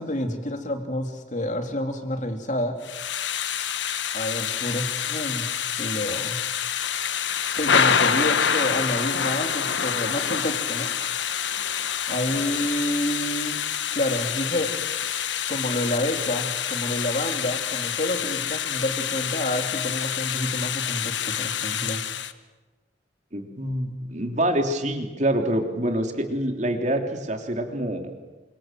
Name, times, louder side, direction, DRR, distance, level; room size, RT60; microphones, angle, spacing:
voice 1, 0.0-2.8 4.1-5.5 5.8-6.4 7.5-10.9 12.1-13.6 13.9-14.7 15.5-22.0, left 1 dB, 40° left, 5 dB, 3.1 m, -29 dB
Thunder / Rain, 2.8-22.3, left 8 dB, 80° left, 1.3 m, -27 dB
voice 2, 23.3-28.1, right 1 dB, 40° right, 4 dB, 3.3 m, -26 dB
29.5 x 25.5 x 7.7 m, 1.3 s
head